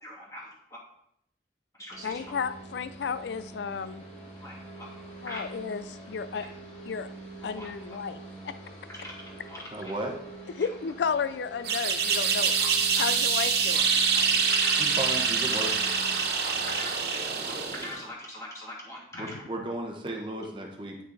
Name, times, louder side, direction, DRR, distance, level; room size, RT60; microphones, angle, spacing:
voice 1, 0.0-0.8 1.8-2.3 4.4-5.0 5.3-5.5 6.3-6.5 7.4-7.7 8.9-9.1 9.5-9.9 12.6-12.7 12.9-13.2 13.7-13.8 14.1-14.9 16.4-19.4, left 1 dB, 20° left, -5 dB, 2.6 m, -42 dB
sound 1, 1.9-16.8, right 2 dB, 40° left, 2.9 m, -45 dB
voice 2, 2.0-4.0 5.2-6.4 6.9-7.1 7.4-8.2 8.4-8.5 10.6-12.6 13.0-13.9 16.7-16.8 19.3-19.4, left 6 dB, 80° left, 13 dB, 0.4 m, -33 dB
voice 3, 9.7-10.2 14.8-15.7 19.2-21.0, right 1 dB, 30° right, 1 dB, 1.0 m, -34 dB
sound 2, 11.6-18.0, right 6 dB, 65° right, 1.4 m, -25 dB
9.9 x 6.2 x 4.0 m, 0.76 s
head